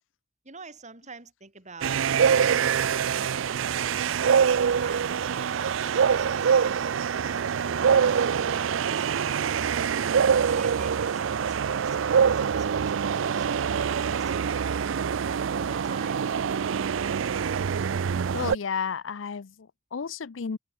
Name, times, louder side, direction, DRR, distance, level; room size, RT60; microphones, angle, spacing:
voice 1, 0.4-3.9 4.7-9.6 10.3-14.5 15.2-16.2, right 3 dB, 40° right, 6.0 m, -47 dB
sound 1, 1.8-18.6, right 7 dB, 75° right, 0.4 m, -25 dB
voice 2, 18.3-20.6, left 6 dB, 70° left, 0.6 m, -32 dB
head